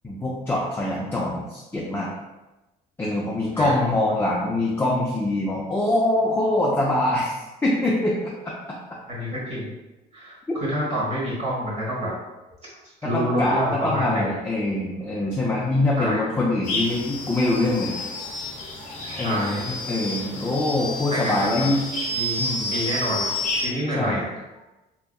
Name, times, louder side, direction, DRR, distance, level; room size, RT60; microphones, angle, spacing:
voice 1, 0.0-2.1 3.0-8.3 13.1-18.2 19.2-21.8 22.4-22.7 23.9-24.2, left 2 dB, 15° left, -4 dB, 0.4 m, -24 dB
voice 2, 9.1-9.7 10.1-12.1 12.8-14.4 15.9-16.2 19.0-19.7 21.1-21.7 22.1-23.3 23.6-24.2, equal, 40° right, -6 dB, 1.3 m, -28 dB
sound 1, 16.6-23.7, left 2 dB, 50° left, 0.6 m, -30 dB
2.7 x 2.2 x 2.2 m, 1.0 s
cardioid pair, 110°, 17 cm